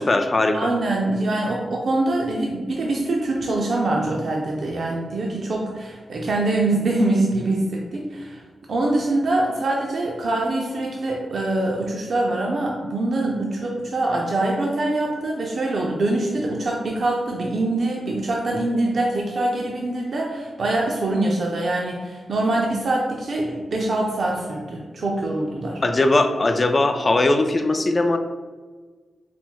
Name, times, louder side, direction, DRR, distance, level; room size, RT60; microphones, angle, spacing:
voice 1, 0.0-0.7 25.8-28.2, left 2 dB, 30° left, 7 dB, 0.3 m, -19 dB
voice 2, 0.5-8.4 8.7-25.8, right 2 dB, 55° right, -2 dB, 0.5 m, -24 dB
4.3 x 2.0 x 4.4 m, 1.4 s
wide cardioid pair, 160°, 0 cm